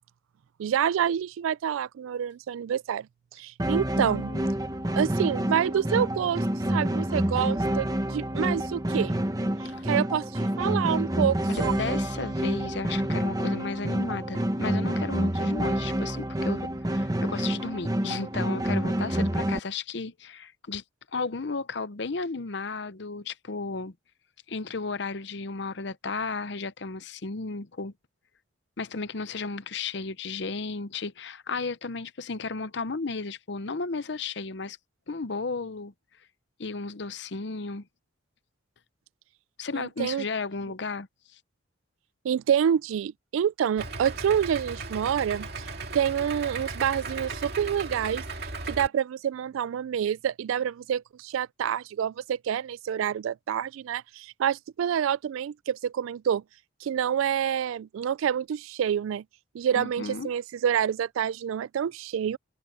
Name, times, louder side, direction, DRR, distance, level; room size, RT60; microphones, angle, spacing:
voice 1, 0.6-3.1 3.3-4.3 5.0-9.2 9.8-11.8 39.7-40.2 42.2-48.2 48.6-56.4 56.8-59.2 59.5-62.4, right 8 dB, 80° right, 0.3 m, -27 dB
sound 1, 3.6-19.6, right 1 dB, 20° right, 1.1 m, -28 dB
voice 2, 4.0-4.4 9.6-9.8 11.5-20.8 21.1-23.9 24.5-27.9 28.8-34.8 35.1-35.9 36.6-37.9 39.6-41.4 59.7-60.3, left 4 dB, 60° left, 0.7 m, -34 dB
Idling, 43.8-48.9, right 3 dB, 50° right, 2.6 m, -36 dB
head